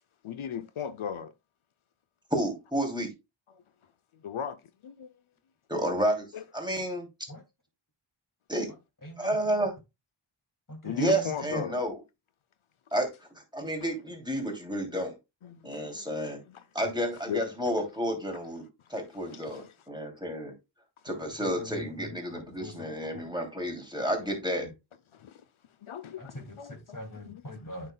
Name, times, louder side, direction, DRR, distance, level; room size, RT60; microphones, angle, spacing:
voice 1, 0.2-1.3 3.5-3.6 4.1-5.1 6.3-6.4 10.8-11.8 15.4-16.1 16.5-16.6 17.3-17.4 19.3-19.7 22.3-22.4 25.1-25.4 25.8-26.7 27.3-27.4, left 8 dB, 80° left, 0.6 m, -37 dB
voice 2, 2.3-3.1 5.7-6.3 6.5-7.3 8.5-8.7 9.2-9.7 10.9-12.0 12.9-15.2 15.6-16.4 16.7-20.6 21.0-24.7, right 1 dB, 10° right, 2.7 m, -31 dB
voice 3, 9.0-9.7 10.7-11.6 16.8-16.9 21.4-23.3 24.2-24.7 26.2-27.9, equal, 40° left, 2.5 m, -43 dB
9.0 x 5.9 x 2.2 m
wide cardioid pair, 45°, 48 cm